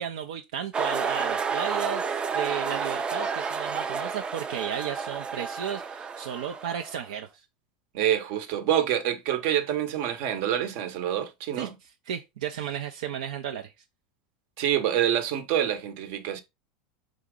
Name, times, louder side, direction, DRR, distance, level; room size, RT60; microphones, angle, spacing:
voice 1, 0.0-7.4 11.6-11.7 12.0-13.7, right 9 dB, 80° right, 0.5 m, -34 dB
sound 1, 0.7-7.1, right 5 dB, 25° right, 0.4 m, -30 dB
voice 2, 7.9-11.7 14.6-16.4, right 10 dB, 60° right, 0.9 m, -26 dB
5.0 x 2.7 x 3.6 m
supercardioid pair, 110°, 4 cm